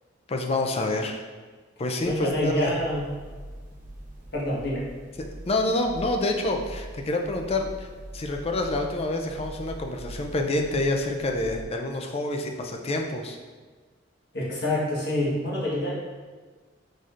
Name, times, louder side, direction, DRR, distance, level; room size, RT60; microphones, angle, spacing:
voice 1, 0.3-1.2 1.8-2.8 5.5-7.9 8.1-13.4, left 2 dB, 30° left, 3 dB, 0.4 m, -27 dB
voice 2, 2.0-3.0 4.3-4.8 14.3-15.9, left 1 dB, 60° left, -6 dB, 1.3 m, -27 dB
sound 1, 2.0-11.6, right 1 dB, 45° right, 0.9 m, -43 dB
4.8 x 4.3 x 2.5 m, 1.4 s
head